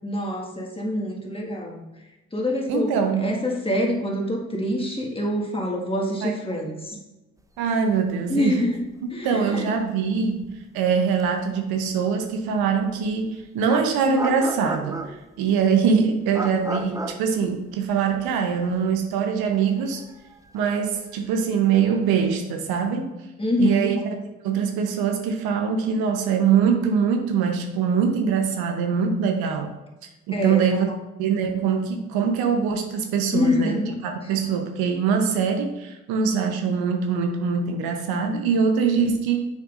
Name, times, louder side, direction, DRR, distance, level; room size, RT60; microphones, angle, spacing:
voice 1, 0.0-1.8 2.3-7.0 8.3-8.8 9.1-9.7 23.4-23.9 30.3-30.8 33.3-33.9 34.2-34.3, left 1 dB, 15° left, -1 dB, 1.8 m, -26 dB
voice 2, 2.7-3.4 6.2-6.3 7.6-8.6 9.2-20.0 20.5-23.1 23.6-24.1 24.4-29.7 30.3-30.9 31.2-39.5, right 6 dB, 70° right, 5 dB, 0.9 m, -23 dB
sound 1, 8.5-8.6 8.8-9.0 11.2-11.3 13.0-13.1 13.7-15.4 16.3-18.3 18.6-18.7 19.5-21.8, right 2 dB, 10° right, 0.6 m, -34 dB
7.2 x 5.8 x 2.5 m, 1.0 s
hypercardioid pair, 50°, 38 cm